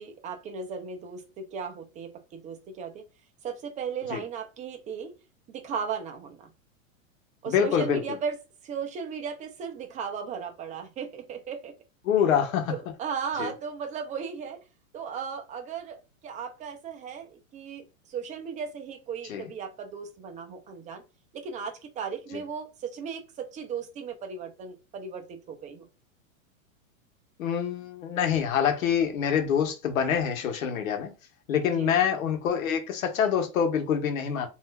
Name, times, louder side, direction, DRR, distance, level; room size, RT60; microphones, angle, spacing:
voice 1, 0.0-3.0 3.4-5.2 5.5-6.5 7.4-8.4 8.6-11.7 12.7-14.6 14.9-17.8 18.1-21.0 21.3-25.9 31.7-32.0, right 6 dB, 20° right, 0.5 m, -36 dB
voice 2, 7.5-8.0 12.0-12.7 13.4-13.5 19.3-19.5 22.3-22.4 27.4-31.1 31.5-34.5, left 8 dB, 80° left, 1.1 m, -26 dB
3.5 x 2.6 x 2.3 m
hypercardioid pair, 130°, 41 cm